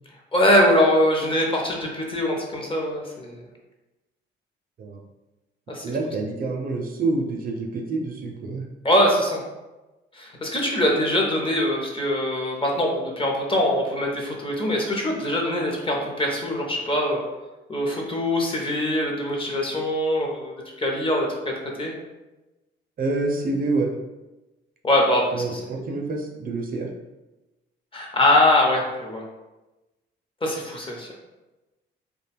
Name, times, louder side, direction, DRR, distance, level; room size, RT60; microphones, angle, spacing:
voice 1, 0.3-3.4 5.7-5.8 8.8-9.4 10.1-17.2 17.7-21.5 21.8-21.9 24.8-25.6 27.9-29.2 30.4-31.1, left 1 dB, 25° left, 0 dB, 0.7 m, -22 dB
voice 2, 5.8-8.6 23.0-23.9 25.3-26.9, right 3 dB, 45° right, 1 dB, 0.5 m, -27 dB
2.4 x 2.2 x 3.3 m, 1.1 s
cardioid pair, 90°, 20 cm